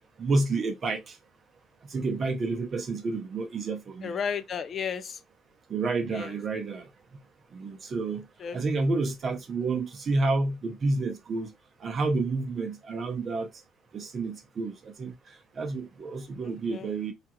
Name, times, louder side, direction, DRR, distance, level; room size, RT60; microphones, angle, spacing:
voice 1, 0.2-1.2 1.9-4.2 5.7-6.9 7.5-8.3 8.5-11.5 11.8-13.5 13.9-15.1 15.6-17.1, right 3 dB, 40° right, 0.7 m, -29 dB
voice 2, 4.0-5.2 6.1-6.3 8.4-8.6 16.4-16.9, left 7 dB, 40° left, 0.4 m, -33 dB
3.3 x 2.4 x 2.9 m
cardioid pair, 125°, 0 cm